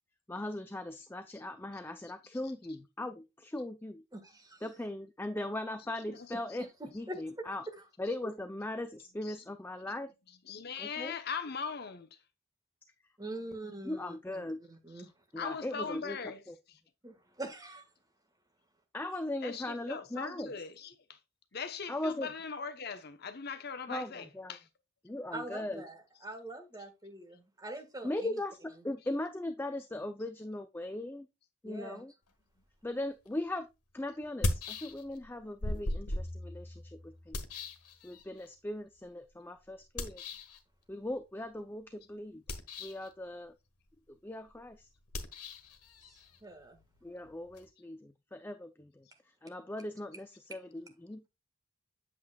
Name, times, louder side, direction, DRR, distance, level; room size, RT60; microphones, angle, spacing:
voice 1, 0.3-4.0 4.6-6.7 6.9-7.6 8.0-10.1 10.8-11.1 13.0-13.1 13.8-14.6 15.3-16.2 16.5-16.6 18.9-20.5 21.9-22.3 23.9-24.6 25.0-25.8 28.0-31.3 31.6-32.1 32.8-37.4 38.0-40.2 40.9-42.4 42.8-43.5 44.2-44.9 47.0-51.3, left 1 dB, 10° left, 0.4 m, -39 dB
voice 2, 4.1-4.6 7.1-7.2 7.7-7.8 13.2-14.4 14.7-15.1 17.0-17.8 25.3-28.4 31.6-32.0 46.1-46.8, right 1 dB, 15° right, 1.5 m, -44 dB
voice 3, 10.5-12.1 15.4-16.4 19.4-21.2 21.5-24.6, left 5 dB, 45° left, 0.8 m, -40 dB
sound 1, 33.3-33.4 34.2-35.3 35.6-38.5 40.0-40.6 42.3-43.1 45.1-47.7, left 1 dB, 90° left, 1.5 m, -38 dB
8.3 x 7.4 x 2.3 m
head